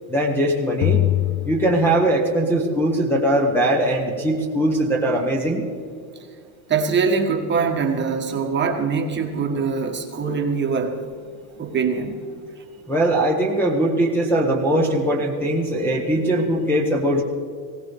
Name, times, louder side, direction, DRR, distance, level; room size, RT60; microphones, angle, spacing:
voice 1, 0.1-1.0 1.5-5.6 12.9-17.2, right 1 dB, 5° left, -5 dB, 1.0 m, -20 dB
sound 1, 0.8-2.6, left 14 dB, 80° left, 0.6 m, -23 dB
voice 2, 6.7-11.0 11.6-12.2, right 5 dB, 20° right, 3 dB, 1.4 m, -23 dB
19.5 x 17.5 x 3.5 m, 2.2 s
cardioid pair, 160°, 50 cm